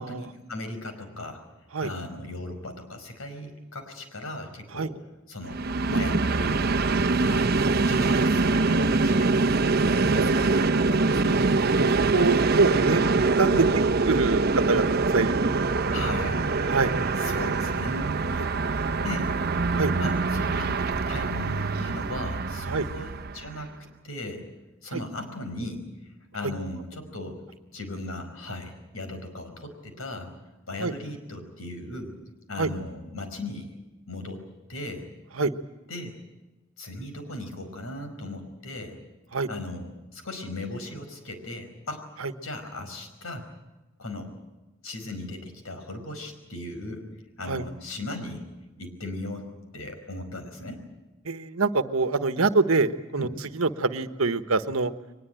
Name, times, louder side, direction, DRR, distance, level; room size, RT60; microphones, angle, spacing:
voice 1, 0.0-1.4 1.8-4.9 5.3-5.6 5.9-7.5 7.8-9.4 10.0-11.4 13.5-13.7 15.9-16.5 17.2-18.3 19.0-19.6 20.0-23.7 24.0-24.5 24.8-25.9 26.3-27.5 27.7-30.3 30.7-32.1 32.5-33.7 34.1-34.4 34.7-35.1 35.9-36.1 36.8-39.0 39.5-42.0 42.4-43.5 44.0-44.3 44.8-47.1 47.4-48.4 48.8-50.8 53.2-53.3, left 1 dB, 90° left, 7 dB, 5.1 m, -37 dB
Train, 5.4-23.6, right 3 dB, 50° right, 0.8 m, -24 dB
voice 2, 9.8-10.3 11.7-13.1 13.4-13.6 14.1-14.8 15.1-15.3 15.9-16.0 16.7-17.3 18.3-18.5 19.7-19.9 22.7-22.9 24.9-25.0 30.8-30.9 32.6-32.7 35.3-35.5 39.3-39.5 42.2-42.3 47.5-47.6 51.2-53.3 53.5-54.9, right 3 dB, 85° right, 10 dB, 1.2 m, -25 dB
23.0 x 20.5 x 9.1 m, 1.1 s
head